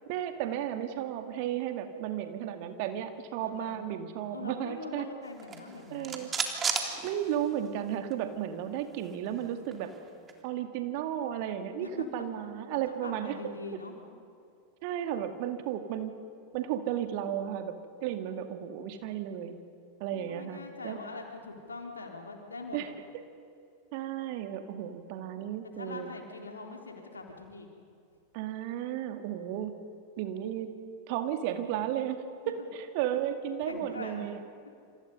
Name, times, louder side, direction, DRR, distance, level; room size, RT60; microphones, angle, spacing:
voice 1, 0.1-5.1 5.9-6.3 7.0-9.9 10.4-13.4 14.8-16.1 16.5-19.6 20.0-21.0 22.7-22.9 23.9-26.1 28.3-29.7 30.2-30.7 31.1-34.4, right 10 dB, 45° right, 7 dB, 2.2 m, -34 dB
voice 2, 3.4-3.8 4.3-6.2 11.8-12.3 12.7-14.0 20.1-22.8 25.7-27.7 32.4-32.5 33.7-34.2, left 3 dB, 75° left, 2 dB, 3.9 m, -43 dB
sound 1, 5.3-7.8 8.1-8.2 8.5-10.4, right 5 dB, 20° right, 3.0 m, -35 dB
28.5 x 27.5 x 5.5 m, 2.4 s
figure-of-eight pair, 90°, 0 cm